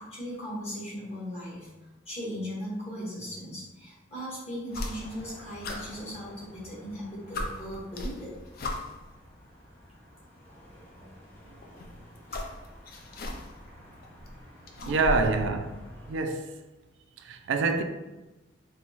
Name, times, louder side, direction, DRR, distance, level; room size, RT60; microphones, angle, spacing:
voice 1, 0.0-1.7 2.0-8.3 12.3-12.4 14.8-15.0, equal, 35° left, 1.5 m, -38 dB
sound 1, 4.7-5.3 5.6-6.7 7.0-7.1 7.3-9.1 10.1-10.2 11.6-13.7 14.0-15.4, left 1 dB, 50° left, 0.4 m, -37 dB
sound 2, 4.7-16.2, equal, 10° left, 1.0 m, -51 dB
voice 2, 14.9-16.5 17.2-17.8, right 3 dB, 65° right, 0.3 m, -27 dB
4.2 x 2.2 x 2.9 m
head